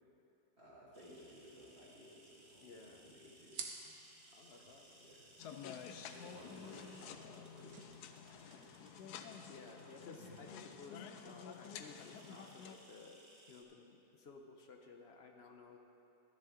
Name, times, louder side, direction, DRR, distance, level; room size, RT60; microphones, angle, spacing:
voice 1, 0.6-3.6 4.5-5.3 6.0-8.0 8.2-8.7 9.8-10.3, equal, 40° right, -7 dB, 2.7 m, -58 dB
sound 1, 0.9-13.6, right 1 dB, 25° right, 0.8 m, -64 dB
sound 2, 2.1-9.7, right 5 dB, 75° right, 1.4 m, -55 dB
voice 2, 2.6-3.1 4.3-5.1 9.5-13.2 13.5-15.8, left 4 dB, 50° left, 3 dB, 0.8 m, -56 dB
sound 3, 5.4-12.7, left 7 dB, 90° left, 1.1 m, -51 dB
12.5 x 10.0 x 3.7 m, 2.9 s
omnidirectional pair, 1.6 m